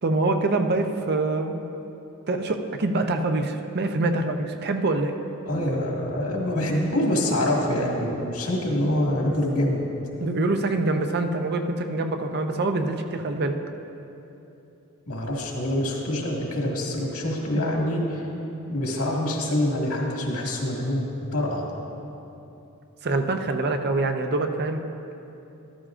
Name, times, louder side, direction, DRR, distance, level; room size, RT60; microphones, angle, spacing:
voice 1, 0.0-1.6 2.3-5.2 10.2-13.6 23.0-24.8, right 2 dB, 50° right, 6 dB, 0.6 m, -25 dB
voice 2, 5.5-9.8 15.1-18.2 18.7-21.6, left 1 dB, 80° left, -2 dB, 1.9 m, -25 dB
14.0 x 12.5 x 2.5 m, 2.9 s
head